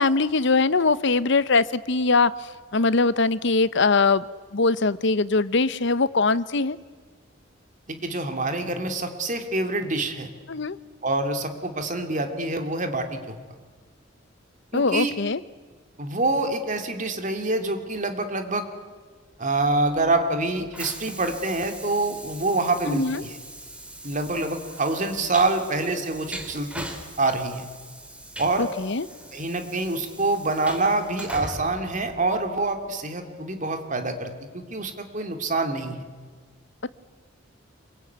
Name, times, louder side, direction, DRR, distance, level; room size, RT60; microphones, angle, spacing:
voice 1, 0.0-4.2 4.5-6.8 10.5-10.8 14.7-15.4 22.9-23.2 28.6-29.1, left 3 dB, 60° left, 16 dB, 0.8 m, -22 dB
voice 2, 7.9-10.3 11.0-13.3 14.7-15.1 16.0-18.6 19.4-23.4 24.0-26.9 27.2-27.7 28.4-28.7 29.3-36.0, right 2 dB, 40° right, 6 dB, 2.6 m, -26 dB
Train, 20.1-32.8, right 1 dB, 5° right, 2.9 m, -41 dB
26.5 x 22.5 x 9.4 m, 1.4 s
head